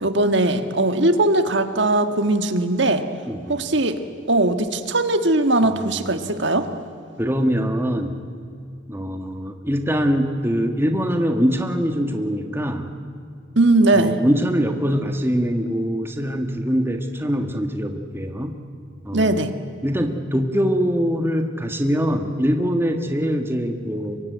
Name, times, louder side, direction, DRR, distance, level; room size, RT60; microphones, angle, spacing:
voice 1, 0.0-3.0 3.5-4.0 4.3-6.7 13.5-14.2 19.1-19.5, right 2 dB, 60° right, 8 dB, 1.6 m, -19 dB
voice 2, 3.3-3.7 5.6-5.9 6.2-6.4 7.2-8.2 8.9-12.9 13.9-18.6 19.0-19.5 19.8-24.2, equal, 10° right, 5 dB, 1.6 m, -23 dB
25.0 x 23.5 x 9.4 m, 2.4 s
head